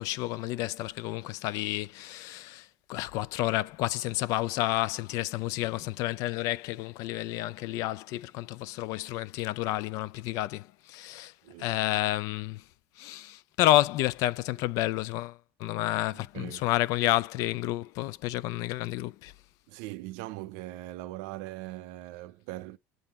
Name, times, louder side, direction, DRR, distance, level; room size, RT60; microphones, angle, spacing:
voice 1, 0.0-11.3 11.6-12.6 13.0-19.3, left 16 dB, 60° left, 0.4 m, -30 dB
voice 2, 11.4-11.8 16.1-16.7 19.7-22.8, right 17 dB, 75° right, 0.6 m, -41 dB
8.0 x 3.9 x 4.2 m
cardioid pair, 150°, 6 cm